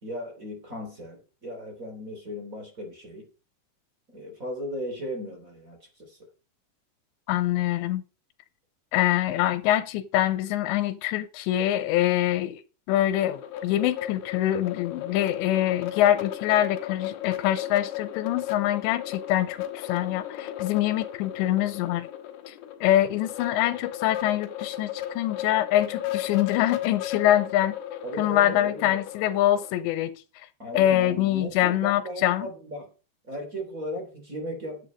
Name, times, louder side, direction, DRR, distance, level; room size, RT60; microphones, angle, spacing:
voice 1, 0.0-3.3 4.1-6.2 28.0-29.0 30.6-32.9 33.2-34.9, equal, 20° right, 2.9 m, -36 dB
voice 2, 7.3-8.0 8.9-12.6 12.9-22.1 22.5-22.6 22.8-27.8 28.2-30.1 30.7-32.5, left 13 dB, 90° left, 3.3 m, -24 dB
sound 1, 13.1-29.8, left 12 dB, 70° left, 3.1 m, -35 dB
11.5 x 8.3 x 5.2 m
omnidirectional pair, 5.0 m